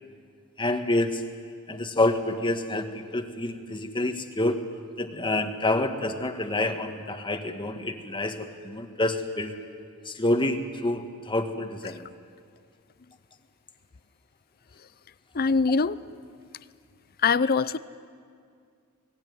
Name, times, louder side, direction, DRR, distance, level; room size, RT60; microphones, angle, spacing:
voice 1, 0.6-1.2 1.7-4.6 5.0-9.5 10.1-12.1, left 2 dB, 20° left, 6 dB, 1.8 m, -27 dB
voice 2, 15.3-16.0 17.2-17.8, left 4 dB, 45° left, 17 dB, 0.6 m, -22 dB
28.5 x 20.5 x 9.5 m, 2.2 s
head